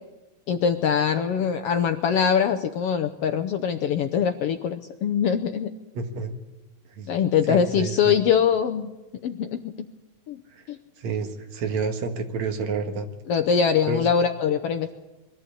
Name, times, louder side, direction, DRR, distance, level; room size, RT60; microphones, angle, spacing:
voice 1, 0.5-5.7 7.1-8.9 9.2-9.7 10.3-10.4 10.7-10.8 13.3-14.9, left 7 dB, 70° left, 7 dB, 1.5 m, -23 dB
voice 2, 5.9-6.4 7.0-7.1 7.5-8.1 10.5-10.7 11.0-13.1 13.9-14.1, right 4 dB, 70° right, 7 dB, 2.8 m, -29 dB
22.0 x 14.0 x 8.4 m, 1.1 s
omnidirectional pair, 3.4 m